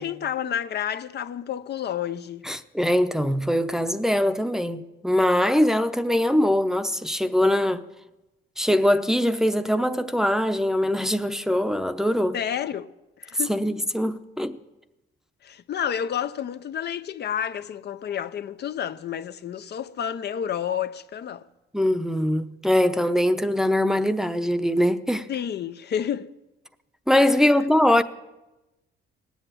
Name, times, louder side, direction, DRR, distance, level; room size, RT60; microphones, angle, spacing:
voice 1, 0.0-2.4 12.3-12.9 13.2-13.5 15.4-21.4 25.3-26.3, left 9 dB, 55° left, 0.7 m, -30 dB
voice 2, 2.4-7.8 8.6-12.4 13.5-14.6 21.7-25.3 27.1-28.0, left 1 dB, ahead, 0.7 m, -22 dB
18.5 x 8.2 x 9.1 m
cardioid pair, 90°, 20 cm